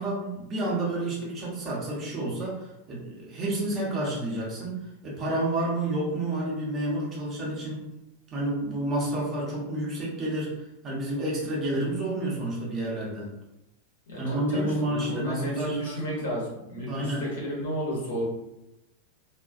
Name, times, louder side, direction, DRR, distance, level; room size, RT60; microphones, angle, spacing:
voice 1, 0.0-7.8 8.3-13.3 14.2-16.2 16.8-17.3, right 1 dB, 25° right, -5 dB, 0.8 m, -30 dB
voice 2, 14.1-18.2, equal, 60° left, -4 dB, 1.0 m, -32 dB
2.3 x 2.1 x 2.5 m, 0.93 s
figure-of-eight pair, 90°, 0 cm